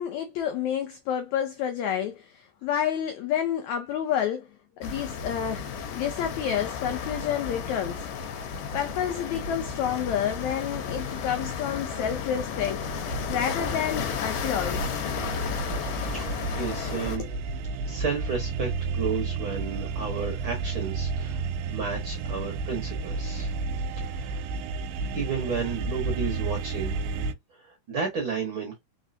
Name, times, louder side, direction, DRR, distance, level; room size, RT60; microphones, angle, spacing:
voice 1, 0.0-4.5 4.8-8.0 8.7-14.9 17.2-17.3, left 9 dB, 85° left, 1.6 m, -29 dB
sound 1, 4.8-17.2, left 6 dB, 70° left, 2.4 m, -33 dB
sound 2, 11.4-27.3, right 4 dB, 85° right, 2.3 m, -32 dB
voice 2, 15.9-17.2 17.8-21.4 21.7-23.5 23.9-24.4 25.1-27.0 27.5-28.8, right 5 dB, 60° right, 1.4 m, -33 dB
4.6 x 4.1 x 2.7 m
omnidirectional pair, 4.2 m